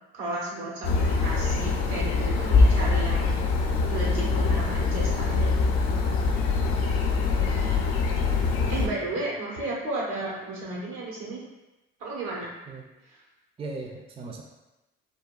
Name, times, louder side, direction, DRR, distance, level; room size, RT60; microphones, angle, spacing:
voice 1, 0.1-3.4 3.9-5.7 7.3-7.8 8.7-11.4 12.0-12.5 13.1-13.2, right 2 dB, 75° right, -4 dB, 1.0 m, -34 dB
sound 1, 0.8-8.9, left 4 dB, 80° left, 0.5 m, -23 dB
voice 2, 13.6-14.4, right 3 dB, 20° right, 1 dB, 0.4 m, -39 dB
3.4 x 2.2 x 2.3 m, 1.0 s
supercardioid pair, 60°, 29 cm